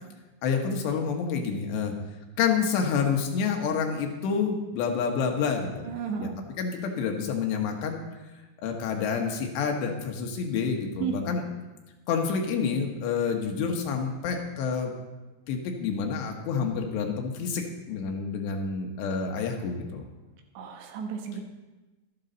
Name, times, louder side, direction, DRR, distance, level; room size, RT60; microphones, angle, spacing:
voice 1, 0.4-1.9 2.4-5.8 6.2-6.3 6.6-8.0 8.6-11.4 12.1-14.9 15.5-20.0, left 6 dB, 80° left, 3 dB, 3.4 m, -28 dB
voice 2, 5.9-6.3 11.0-11.2 20.6-21.4, right 7 dB, 90° right, 3 dB, 3.5 m, -33 dB
12.5 x 12.0 x 4.0 m, 1.1 s
omnidirectional pair, 4.9 m